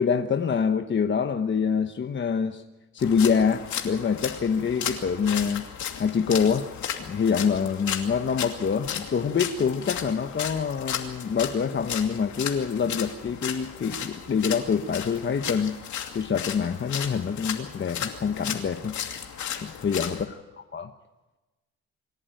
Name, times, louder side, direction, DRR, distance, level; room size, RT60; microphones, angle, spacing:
voice 1, 0.0-2.6 2.9-5.7 6.0-6.7 7.1-15.8 16.1-18.9 19.6-20.3 20.7-20.9, left 6 dB, 40° left, 7 dB, 1.1 m, -25 dB
sound 1, 3.0-20.2, left 8 dB, 70° left, 2.7 m, -35 dB
27.5 x 11.0 x 9.2 m, 1.1 s
cardioid pair, 90°, 30 cm